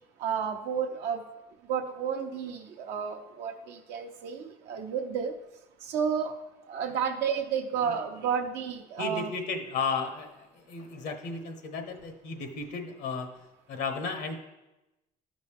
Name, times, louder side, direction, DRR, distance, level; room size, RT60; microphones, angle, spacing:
voice 1, 0.2-1.2 1.7-5.3 5.8-6.3 6.7-9.3, right 7 dB, 80° right, 2 dB, 0.7 m, -31 dB
voice 2, 9.0-13.3 13.7-14.4, left 4 dB, 85° left, 6 dB, 1.0 m, -34 dB
12.0 x 5.3 x 3.5 m, 1.0 s
cardioid pair, 110°, 17 cm